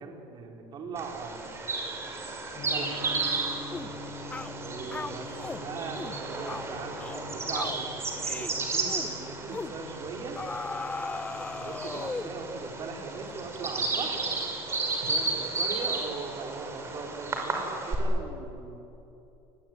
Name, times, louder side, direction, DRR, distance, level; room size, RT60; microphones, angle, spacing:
voice 1, 0.0-1.5 2.6-3.1 4.3-7.9 8.3-10.4 11.5-14.3 15.1-18.8, right 4 dB, 40° right, 2 dB, 4.7 m, -40 dB
Bird vocalization bird call bird song, 1.0-18.0, right 3 dB, 25° right, 5.7 m, -33 dB
Gong, 2.5-16.7, left 4 dB, 45° left, 4.5 m, -47 dB
voice 2, 3.0-3.5 3.7-4.5 15.0-15.2, right 5 dB, 80° right, -2 dB, 7.1 m, -50 dB
sound 1, 3.7-3.9 4.3-4.5 4.9-5.6 6.0-6.2 6.5-6.7 7.0-7.3 7.5-7.8 8.2-8.5 8.9-9.1 9.5-9.8 10.4-12.4, left 3 dB, 15° left, 0.7 m, -37 dB
28.5 x 21.0 x 9.5 m, 3.0 s
cardioid pair, 130°, 11 cm